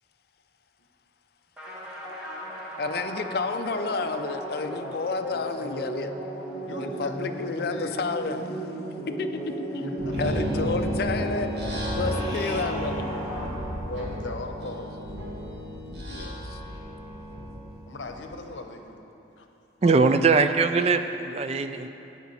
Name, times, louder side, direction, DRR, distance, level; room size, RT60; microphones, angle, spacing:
sound 1, 1.6-14.1, right 1 dB, 5° right, 1.6 m, -36 dB
voice 1, 2.8-6.1 6.8-8.6 9.2-9.3 9.6-9.9 10.2-11.5 12.0-13.3 16.1-16.6, left 3 dB, 55° left, 7 dB, 0.5 m, -30 dB
voice 2, 6.6-7.9 10.0-10.1 10.5-10.9 11.9-12.3 13.9-14.9 17.9-19.1 19.4-19.5 19.8-20.5, left 2 dB, 90° left, 5 dB, 0.8 m, -39 dB
sound 2, 10.0-18.3, equal, 70° right, 1.5 m, -32 dB
voice 3, 19.8-21.9, right 4 dB, 35° right, 9 dB, 0.3 m, -21 dB
10.0 x 8.5 x 4.2 m, 2.9 s
head